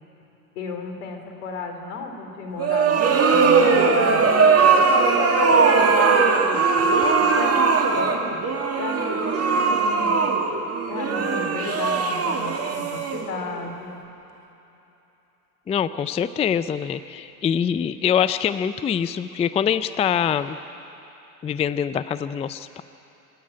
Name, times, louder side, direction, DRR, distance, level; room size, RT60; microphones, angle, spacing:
voice 1, 0.6-4.3 4.8-6.8 7.2-8.4 8.8-10.3 10.9-14.0, left 3 dB, 75° left, 4 dB, 3.5 m, -34 dB
sound 1, 2.6-13.6, right 4 dB, 30° right, 2.1 m, -19 dB
voice 2, 15.7-20.6 21.4-22.8, left 8 dB, 15° left, 13 dB, 0.4 m, -24 dB
26.0 x 10.0 x 9.9 m, 3.0 s
hypercardioid pair, 85°, 46 cm